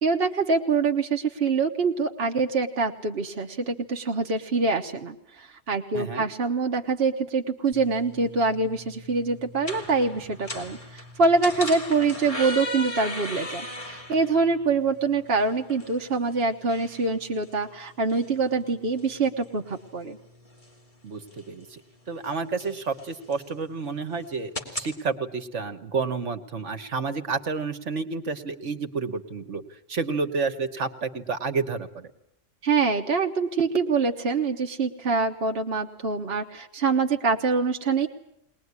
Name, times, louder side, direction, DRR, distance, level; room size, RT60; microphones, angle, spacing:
voice 1, 0.0-20.2 32.6-38.1, right 4 dB, 50° right, 3 dB, 1.4 m, -25 dB
sound 1, 7.7-24.9, left 1 dB, 25° left, 2.8 m, -39 dB
voice 2, 21.0-21.8 22.1-29.6 29.9-32.1, right 4 dB, 65° right, 9 dB, 1.7 m, -30 dB
21.5 x 20.0 x 9.6 m, 0.77 s
omnidirectional pair, 1.3 m